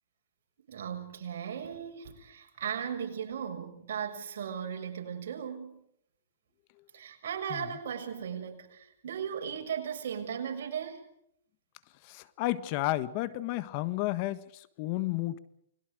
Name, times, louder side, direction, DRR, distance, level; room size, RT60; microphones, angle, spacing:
voice 1, 0.7-5.8 6.9-11.1, right 8 dB, 70° right, 6.7 m, -37 dB
voice 2, 12.0-15.4, left 16 dB, 40° left, 1.4 m, -32 dB
30.0 x 22.0 x 5.0 m
hypercardioid pair, 140°, 0 cm